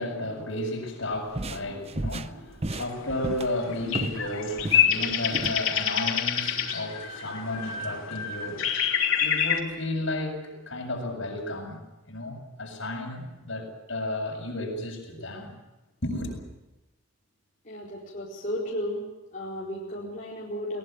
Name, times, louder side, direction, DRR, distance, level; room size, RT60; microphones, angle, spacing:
voice 1, 0.0-8.7 9.2-15.5 16.0-16.4, left 1 dB, 65° left, 1 dB, 7.4 m, -33 dB
sound 1, 1.1-4.3 4.6-5.6, right 2 dB, 30° right, 0.7 m, -34 dB
sound 2, 2.7-9.6, left 8 dB, 80° left, 3.5 m, -27 dB
voice 2, 17.6-19.0 19.3-20.8, equal, 40° left, -6 dB, 4.5 m, -34 dB
22.0 x 20.0 x 8.9 m, 1.0 s
head